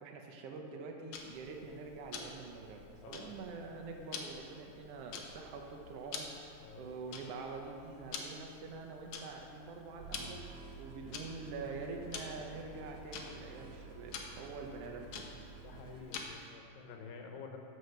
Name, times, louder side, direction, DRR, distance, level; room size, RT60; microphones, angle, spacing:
voice 1, 0.0-15.3, right 4 dB, 80° right, 2 dB, 1.4 m, -46 dB
Tick-tock, 1.1-16.5, left 5 dB, 70° left, 1.8 m, -49 dB
sound 1, 10.0-16.0, right 4 dB, 65° right, 2.5 m, -52 dB
voice 2, 15.6-17.6, left 5 dB, 85° left, 3 dB, 2.7 m, -49 dB
9.8 x 6.2 x 6.7 m, 2.9 s
omnidirectional pair, 3.9 m